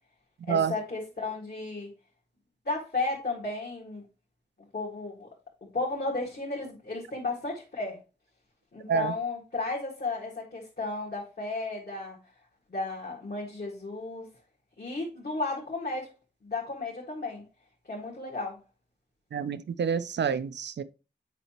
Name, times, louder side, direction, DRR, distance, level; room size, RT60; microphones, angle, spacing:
voice 1, 0.5-1.9 2.7-4.0 4.7-5.3 5.7-8.0 8.7-12.2 12.7-14.3 14.8-16.1 16.4-17.4 17.9-18.6, left 3 dB, 65° left, 1.9 m, -33 dB
voice 2, 19.3-20.8, right 7 dB, 85° right, 0.4 m, -28 dB
8.2 x 4.9 x 2.9 m
wide cardioid pair, 75°, 18 cm